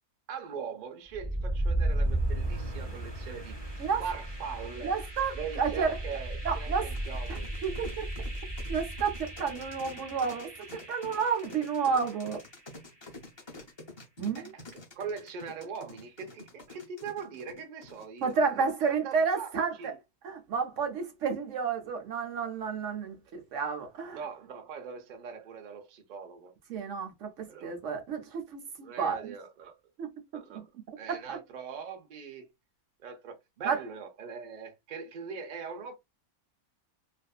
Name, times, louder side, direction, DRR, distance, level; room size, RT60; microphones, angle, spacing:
voice 1, 0.3-5.0 5.3-7.8 14.4-18.6 19.0-20.0 24.1-26.5 27.5-27.7 28.8-29.8 30.3-30.7 31.0-32.5 33.0-35.9, right 6 dB, 85° right, 0.4 m, -41 dB
sound 1, 1.1-13.0, right 1 dB, 20° right, 0.7 m, -35 dB
voice 2, 4.8-6.0 6.4-6.9 7.3-8.1 8.7-12.4 14.2-14.5 18.2-19.9 20.2-24.2 26.7-29.3 30.0-30.1 31.1-31.4 33.7-33.8, right 5 dB, 65° right, 0.9 m, -31 dB
sound 2, 6.9-18.4, left 2 dB, 35° left, 0.4 m, -48 dB
2.5 x 2.4 x 2.3 m
omnidirectional pair, 1.6 m